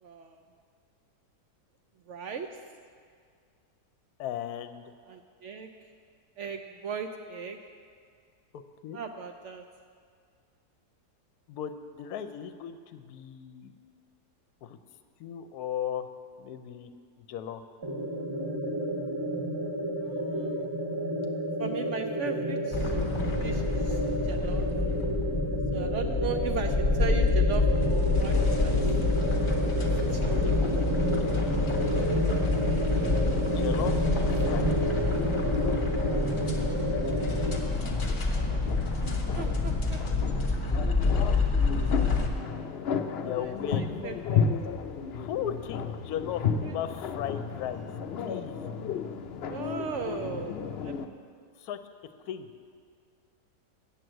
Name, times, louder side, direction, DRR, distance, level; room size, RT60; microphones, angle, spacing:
voice 1, 0.0-0.4 2.1-2.5 5.1-5.7 6.4-7.6 8.9-9.7 20.0-20.7 21.6-22.9 23.4-24.7 25.7-28.9 29.8-30.5 38.3-38.6 39.0-40.0 41.8-42.4 43.4-44.5 46.6-46.7 49.4-50.5 50.8-50.9, right 6 dB, 75° right, 6 dB, 0.6 m, -38 dB
voice 2, 4.2-4.8 8.5-9.0 11.5-13.7 14.6-14.8 15.2-16.1 16.4-16.9 17.2-17.6 30.3-30.7 31.2-31.3 33.4-34.7 41.1-41.4 43.2-43.9 45.1-47.9 48.2-48.6 49.5-50.7 51.6-52.5, left 9 dB, 70° left, 10 dB, 1.1 m, -37 dB
sound 1, 17.8-37.5, right 1 dB, 20° right, 0.7 m, -30 dB
sound 2, 22.7-42.3, left 3 dB, 25° left, 0.8 m, -27 dB
sound 3, 34.4-51.1, left 6 dB, 90° left, 0.5 m, -34 dB
8.7 x 7.8 x 7.8 m, 2.1 s
omnidirectional pair, 1.8 m